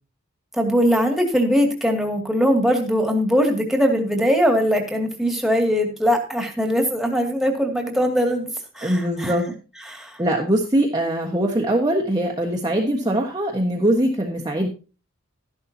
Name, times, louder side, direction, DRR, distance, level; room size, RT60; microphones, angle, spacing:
voice 1, 0.5-9.4 9.9-10.2, equal, ahead, 2 dB, 2.3 m, -21 dB
voice 2, 8.8-9.5 10.2-14.7, right 1 dB, 20° right, -1 dB, 1.4 m, -22 dB
13.0 x 11.5 x 2.8 m, 0.33 s
head